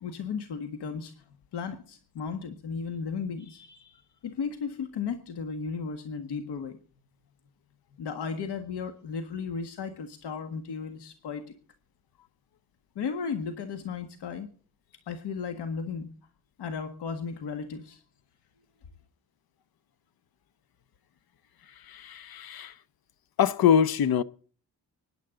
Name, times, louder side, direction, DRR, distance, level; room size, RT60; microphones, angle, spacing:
voice 1, 0.0-1.2 1.5-6.8 8.0-11.5 13.0-14.5 15.1-16.1 16.6-18.0, left 5 dB, 80° left, 1.7 m, -35 dB
voice 2, 21.8-22.7 23.4-24.2, left 8 dB, 60° left, 0.9 m, -24 dB
24.5 x 10.5 x 3.8 m
cardioid pair, 130°, 40 cm